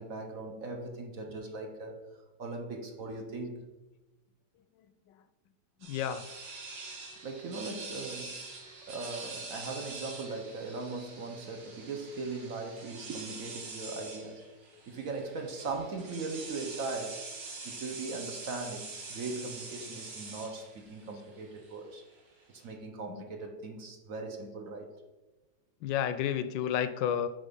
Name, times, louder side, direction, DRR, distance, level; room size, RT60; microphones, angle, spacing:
voice 1, 0.0-2.0 2.4-3.7 7.2-8.5 8.9-17.3 17.6-22.1 22.5-25.0, right 3 dB, 55° right, 4 dB, 1.2 m, -39 dB
voice 2, 5.8-6.2 23.1-23.2 25.8-27.3, left 9 dB, 80° left, 11 dB, 1.2 m, -31 dB
sound 1, 5.8-22.7, right 3 dB, 75° right, 2.0 m, -45 dB
9.0 x 4.0 x 5.3 m, 1.1 s
omnidirectional pair, 2.0 m